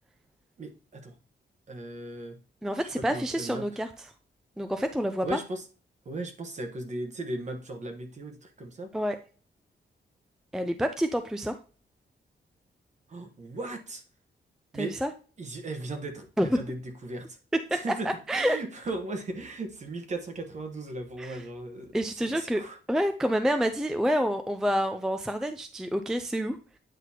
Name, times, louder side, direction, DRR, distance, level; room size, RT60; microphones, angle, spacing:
voice 1, 0.6-1.1 1.7-2.4 2.8-3.6 5.2-5.6 6.0-8.9 13.1-14.0 14.7-14.9 15.4-17.4 17.7-21.9 22.3-22.8, right 2 dB, 40° right, 6 dB, 1.2 m, -37 dB
voice 2, 2.6-4.1 4.6-5.4 8.9-9.2 10.5-11.6 14.7-15.1 16.4-16.6 17.5-18.6 21.2-21.4 21.9-22.6 22.9-26.6, equal, 5° right, 8 dB, 0.4 m, -28 dB
9.0 x 4.0 x 2.8 m, 0.37 s
wide cardioid pair, 160°, 19 cm